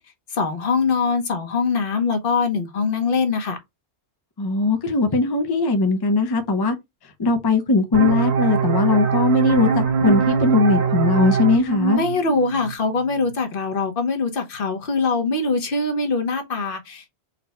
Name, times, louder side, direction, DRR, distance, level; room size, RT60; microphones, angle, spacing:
voice 1, 0.3-3.6 11.9-17.1, left 4 dB, 55° left, 1.1 m, -23 dB
voice 2, 4.4-6.8 7.2-12.0, left 3 dB, 30° left, 0.5 m, -19 dB
sound 1, 7.9-13.3, right 6 dB, 75° right, 1.2 m, -22 dB
4.0 x 2.2 x 4.1 m
omnidirectional pair, 1.1 m